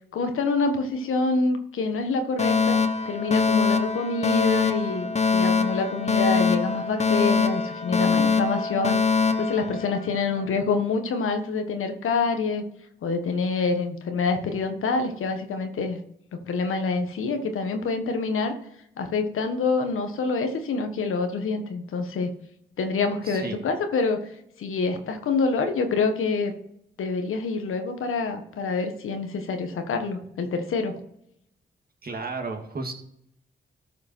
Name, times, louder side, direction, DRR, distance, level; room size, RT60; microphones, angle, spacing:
voice 1, 0.1-2.8 3.0-12.6 13.0-16.0 16.4-18.5 19.0-22.3 22.8-24.2 24.6-26.5 27.0-31.0, left 4 dB, 80° left, 6 dB, 1.4 m, -26 dB
Alarm, 2.4-10.4, left 5 dB, 30° left, 1.2 m, -23 dB
voice 2, 23.3-23.6 32.0-32.9, right 3 dB, 45° right, 3 dB, 2.1 m, -33 dB
13.5 x 5.3 x 4.4 m, 0.76 s
supercardioid pair, 45°, 21 cm